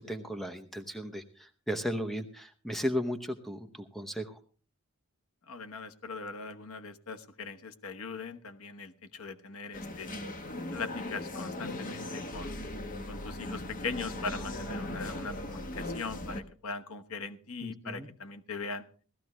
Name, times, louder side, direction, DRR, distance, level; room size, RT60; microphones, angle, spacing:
voice 1, 0.0-4.3 17.6-18.1, equal, ahead, 6 dB, 0.8 m, -35 dB
voice 2, 5.5-10.1 10.7-12.5 13.1-18.9, left 4 dB, 80° left, 7 dB, 1.1 m, -40 dB
sound 1, 9.7-16.4, left 1 dB, 40° left, 1.0 m, -38 dB
17.5 x 13.5 x 3.1 m, 0.41 s
head